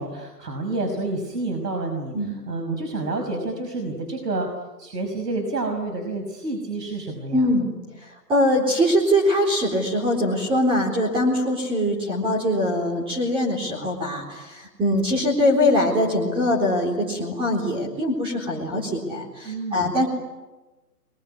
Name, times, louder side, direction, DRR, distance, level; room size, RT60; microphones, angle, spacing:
voice 1, 0.0-4.5 4.8-7.5 19.4-20.0, right 2 dB, 75° right, 4 dB, 5.5 m, -29 dB
voice 2, 7.3-7.7 8.0-20.1, left 1 dB, 10° right, -1 dB, 4.0 m, -22 dB
26.0 x 22.5 x 9.8 m, 1.1 s
hypercardioid pair, 145°, 49 cm